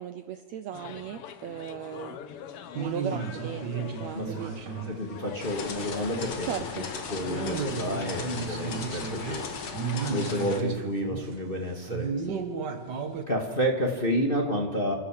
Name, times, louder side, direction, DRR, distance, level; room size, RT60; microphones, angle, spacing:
voice 1, 0.0-2.2 2.7-4.8 6.4-6.9 12.2-12.5, right 10 dB, 90° right, 10 dB, 1.5 m, -37 dB
sound 1, 0.7-8.3, left 8 dB, 85° left, 1.2 m, -44 dB
sound 2, 2.7-6.2 6.5-6.6 7.2-13.2, right 5 dB, 65° right, 1.0 m, -34 dB
voice 2, 4.7-6.5 6.7-9.5 10.1-12.1 13.3-14.9, equal, 20° left, 1 dB, 1.5 m, -30 dB
sound 3, 5.4-10.6, left 5 dB, 45° left, 2.0 m, -37 dB
27.5 x 13.5 x 7.5 m, 1.4 s
omnidirectional pair, 4.1 m